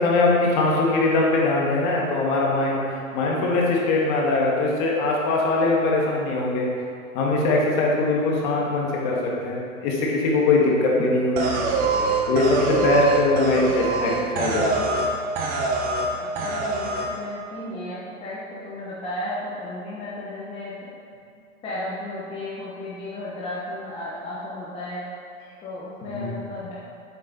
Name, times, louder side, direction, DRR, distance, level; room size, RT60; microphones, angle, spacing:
voice 1, 0.0-2.8 3.1-6.7 7.1-11.5 12.3-14.9 26.0-26.4, left 2 dB, 35° left, -2 dB, 1.8 m, -21 dB
sound 1, 11.4-15.1 15.4-16.1 16.4-17.1, right 3 dB, 20° right, 1.1 m, -24 dB
voice 2, 13.6-14.5 16.1-20.7 21.6-25.0 25.6-26.7, left 1 dB, 15° left, -8 dB, 1.1 m, -34 dB
8.1 x 7.7 x 4.0 m, 2.4 s
hypercardioid pair, 130°, 43 cm